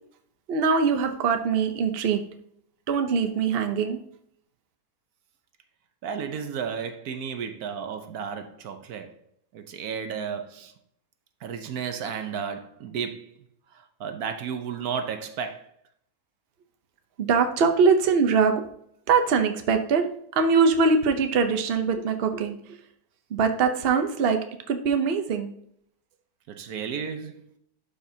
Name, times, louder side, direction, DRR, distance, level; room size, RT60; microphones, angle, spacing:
voice 1, 0.5-2.2 2.9-4.0 17.2-18.7 19.1-22.8 23.3-24.4 24.7-25.5, right 5 dB, 50° right, 6 dB, 0.9 m, -22 dB
voice 2, 6.0-9.1 9.5-10.7 11.4-13.3 13.7-15.7 26.5-27.4, right 7 dB, 80° right, 8 dB, 1.3 m, -33 dB
11.5 x 5.1 x 2.8 m, 0.67 s
omnidirectional pair, 1.6 m